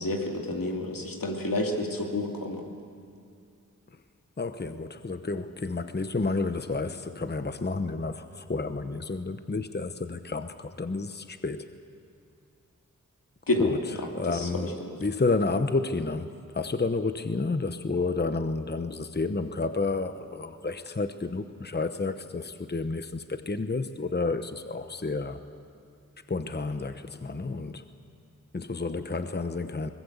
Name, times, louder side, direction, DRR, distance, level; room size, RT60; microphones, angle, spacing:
voice 1, 0.0-2.6 13.5-13.7 14.3-14.5 14.8-14.9, left 2 dB, 90° left, 1 dB, 2.6 m, -29 dB
voice 2, 4.4-11.7 13.6-14.7 15.0-25.4 26.3-27.8 28.5-29.9, left 3 dB, 30° left, 9 dB, 0.9 m, -30 dB
22.5 x 20.0 x 8.1 m, 2.4 s
wide cardioid pair, 60°, 33 cm